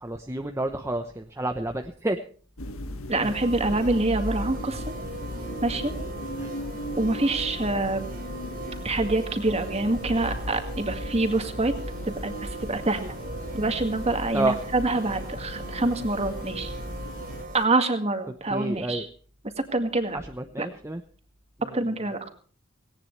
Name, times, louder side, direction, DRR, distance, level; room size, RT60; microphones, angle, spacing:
voice 1, 0.0-2.2 6.4-6.5 14.3-14.6 18.5-19.0 20.4-21.0, right 2 dB, 15° right, 5 dB, 0.9 m, -29 dB
sound 1, 2.6-17.4, left 1 dB, 75° left, 1.9 m, -36 dB
voice 2, 3.1-4.9 5.6-5.9 7.0-8.1 8.8-11.7 12.0-12.3 12.6-13.2 13.5-16.7 17.5-19.1 19.7-20.2 20.6-20.7 21.7-22.3, right 2 dB, 30° right, 7 dB, 2.0 m, -26 dB
sound 2, 3.2-17.7, right 3 dB, 45° right, 3.3 m, -39 dB
18.0 x 18.0 x 3.3 m, 0.43 s
head